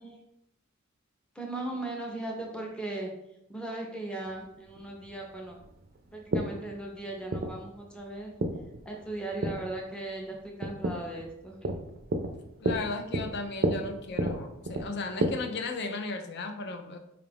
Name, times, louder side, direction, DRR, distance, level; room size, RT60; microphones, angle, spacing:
voice 1, 1.3-3.1 3.5-5.6 6.1-8.3 8.8-11.7, right 2 dB, 5° left, 0 dB, 0.6 m, -38 dB
sound 1, 4.3-15.3, right 1 dB, 45° right, 0.4 m, -33 dB
voice 2, 12.6-17.0, left 3 dB, 50° left, 5 dB, 0.5 m, -35 dB
4.6 x 2.4 x 3.4 m, 0.82 s
head